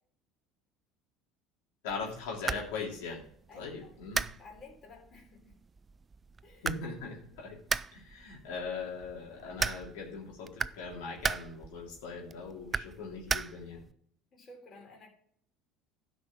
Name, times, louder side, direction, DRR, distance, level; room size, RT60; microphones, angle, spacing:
voice 1, 1.8-3.2 3.5-4.3 6.6-7.6 7.9-13.8, left 4 dB, 85° left, -2 dB, 2.8 m, -40 dB
sound 1, 1.9-13.9, right 5 dB, 20° right, 0.3 m, -38 dB
voice 2, 3.5-4.0 4.3-5.6 6.4-6.7 7.3-7.4 14.3-15.1, left 3 dB, 35° left, 0 dB, 3.7 m, -53 dB
12.0 x 5.3 x 5.9 m, 0.63 s
supercardioid pair, 125°, 0 cm